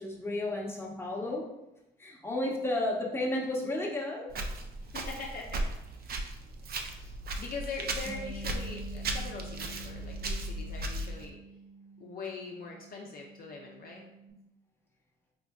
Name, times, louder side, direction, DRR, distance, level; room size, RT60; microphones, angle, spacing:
voice 1, 0.0-1.5 2.0-4.3, left 1 dB, 10° left, -2 dB, 0.8 m, -32 dB
Walk footsteps, 4.3-11.3, right 2 dB, 50° right, 0.4 m, -36 dB
voice 2, 4.9-5.7 6.8-11.4 12.0-14.0, left 4 dB, 50° left, 0 dB, 0.5 m, -42 dB
Bass guitar, 8.1-14.3, right 2 dB, 20° right, 1.0 m, -48 dB
4.4 x 2.5 x 2.3 m, 0.91 s
cardioid pair, 90°, 20 cm